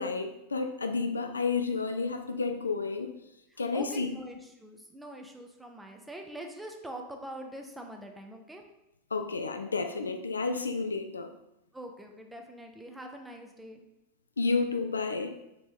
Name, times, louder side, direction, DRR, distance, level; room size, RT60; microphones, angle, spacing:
voice 1, 0.0-3.1 3.6-4.1 9.1-11.3 14.4-15.4, left 4 dB, 75° left, 7 dB, 0.3 m, -31 dB
voice 2, 3.5-8.6 11.7-13.9, right 1 dB, 5° right, 3 dB, 0.5 m, -44 dB
4.2 x 2.8 x 3.5 m, 0.88 s
figure-of-eight pair, 90°, 0 cm